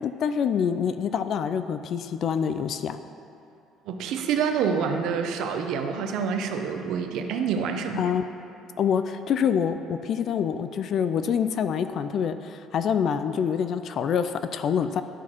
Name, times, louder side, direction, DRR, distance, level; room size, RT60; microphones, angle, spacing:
voice 1, 0.0-3.0 8.0-8.2 8.8-15.0, left 7 dB, 40° left, 10 dB, 0.3 m, -26 dB
voice 2, 3.9-8.0, right 6 dB, 65° right, 5 dB, 0.7 m, -27 dB
11.0 x 6.0 x 4.5 m, 2.8 s
cardioid pair, 170°, 0 cm